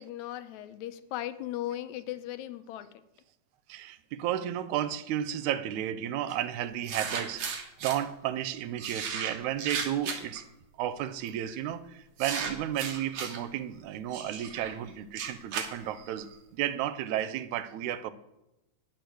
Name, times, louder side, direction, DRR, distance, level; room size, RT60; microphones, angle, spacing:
voice 1, 0.0-2.9, left 13 dB, 80° left, 12 dB, 2.0 m, -37 dB
voice 2, 3.7-10.4 10.8-18.1, right 11 dB, 85° right, 13 dB, 2.1 m, -33 dB
sound 1, 6.3-6.4 6.8-8.0 8.8-10.4 11.2-11.5 12.2-13.4 14.1-16.4, right 6 dB, 70° right, 2.6 m, -36 dB
9.6 x 6.7 x 7.7 m, 0.90 s
omnidirectional pair, 3.3 m